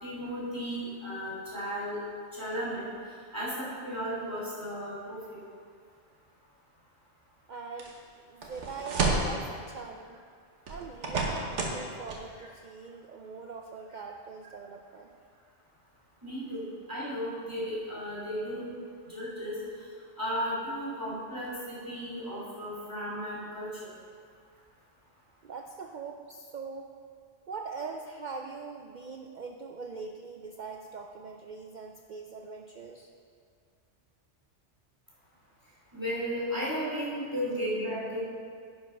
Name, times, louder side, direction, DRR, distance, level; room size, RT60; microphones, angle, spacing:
voice 1, 0.0-2.0 2.3-2.8 3.3-5.2 12.4-12.5 16.2-16.6 16.9-18.6 19.1-19.5 20.2-23.9 35.9-38.2, equal, 15° right, -8 dB, 2.7 m, -34 dB
voice 2, 7.5-7.9 8.2-10.2 10.7-15.1 25.4-26.9 27.5-33.1, right 4 dB, 55° right, 2 dB, 0.5 m, -42 dB
sound 1, 7.8-7.9 8.4-9.4 10.7-11.8 12.1-12.2, right 3 dB, 80° right, 1.4 m, -30 dB
10.5 x 5.3 x 5.3 m, 2.2 s
omnidirectional pair, 1.2 m